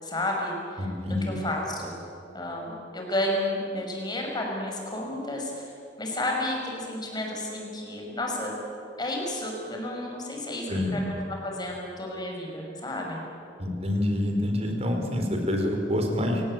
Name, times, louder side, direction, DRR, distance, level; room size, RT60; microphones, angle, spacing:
voice 1, 0.0-2.0 2.3-5.7 6.0-8.6 9.0-11.0 11.3-13.2, left 1 dB, 25° left, 0 dB, 5.9 m, -32 dB
voice 2, 0.8-1.4 10.7-11.0 13.6-16.4, left 1 dB, 35° right, 3 dB, 4.4 m, -27 dB
29.0 x 18.5 x 8.9 m, 2.6 s
head